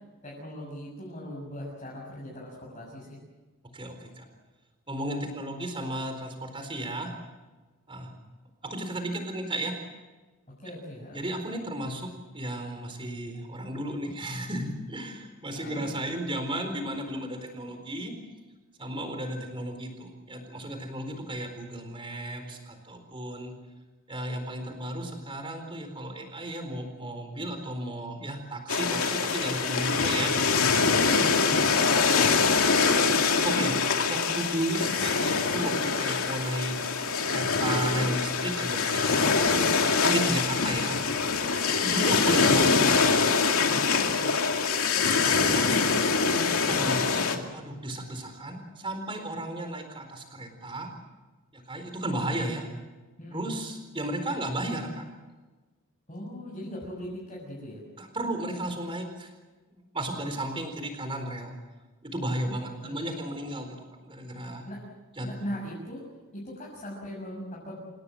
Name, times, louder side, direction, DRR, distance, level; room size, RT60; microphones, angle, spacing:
voice 1, 0.2-3.2 10.6-11.2 15.5-15.9 30.8-32.5 43.7-44.3 53.2-53.5 56.1-57.8 62.4-63.1 64.6-64.8 65.2-66.0 66.3-67.8, equal, 30° left, -5 dB, 6.9 m, -39 dB
voice 2, 3.7-4.2 4.9-7.1 7.9-8.1 8.6-9.7 11.1-12.1 12.3-18.1 18.8-23.5 24.1-30.7 33.4-36.7 37.3-39.2 40.0-41.0 41.9-42.8 45.2-45.8 46.3-50.9 51.5-52.7 53.3-55.0 58.0-59.3 59.9-61.6 62.0-63.7 64.0-64.6 65.1-65.3, right 1 dB, 25° right, 6 dB, 4.3 m, -34 dB
sound 1, 28.7-47.4, left 5 dB, 85° left, 2.4 m, -24 dB
28.0 x 18.0 x 7.8 m, 1.3 s
head